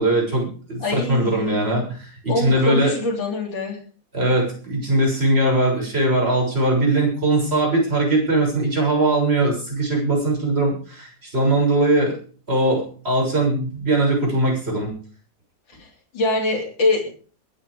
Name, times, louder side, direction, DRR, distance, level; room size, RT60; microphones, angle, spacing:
voice 1, 0.0-2.9 4.1-12.1 12.5-14.9, right 2 dB, 30° right, -1 dB, 7.1 m, -20 dB
voice 2, 0.8-1.5 2.3-3.8 16.1-17.1, left 3 dB, 70° left, 1 dB, 4.2 m, -23 dB
22.0 x 9.6 x 5.1 m, 0.42 s
omnidirectional pair, 2.1 m